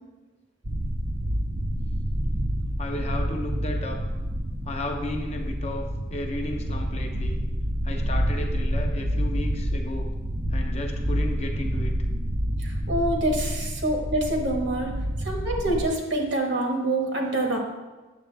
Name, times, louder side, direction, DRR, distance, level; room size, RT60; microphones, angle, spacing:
sound 1, 0.6-15.9, equal, 25° right, 0.5 m, -28 dB
voice 1, 2.8-4.0 4.6-7.4 7.8-10.1 10.5-11.9, left 2 dB, 30° left, 2 dB, 0.7 m, -34 dB
voice 2, 12.6-14.9 15.2-17.6, right 1 dB, 55° right, 1 dB, 1.4 m, -26 dB
8.3 x 7.2 x 3.3 m, 1.2 s
head